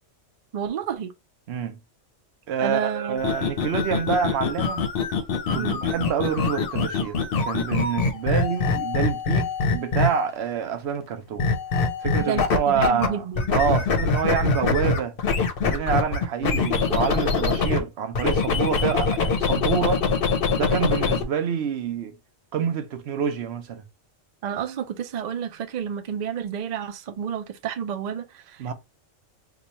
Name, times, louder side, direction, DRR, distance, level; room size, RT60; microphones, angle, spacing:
voice 1, 0.5-1.1 2.6-3.2 5.5-5.8 12.2-13.5 24.4-28.7, right 8 dB, 85° right, 0.3 m, -30 dB
voice 2, 1.5-1.8 2.5-4.9 5.5-11.5 12.0-13.2 13.5-15.1 15.6-20.1 20.5-22.1 22.5-23.8 28.6-28.7, right 7 dB, 60° right, 0.8 m, -27 dB
sound 1, 3.2-10.4 11.4-13.1 13.4-17.8 18.1-21.2, left 4 dB, 55° left, 0.8 m, -24 dB
3.0 x 2.3 x 4.0 m
omnidirectional pair, 1.3 m